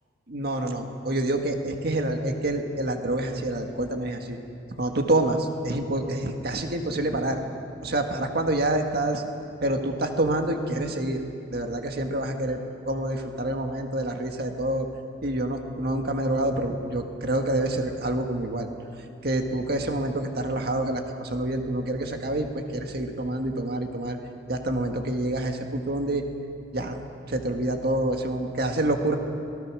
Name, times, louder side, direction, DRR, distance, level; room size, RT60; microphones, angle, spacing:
voice 1, 0.3-4.4 4.8-7.4 7.8-9.2 9.6-11.2 11.5-12.6 12.9-14.9 15.2-18.7 19.2-24.2 24.5-26.2 26.7-27.0 27.3-29.2, right 1 dB, 55° right, 4 dB, 1.8 m, -27 dB
26.0 x 18.5 x 6.3 m, 2.7 s
head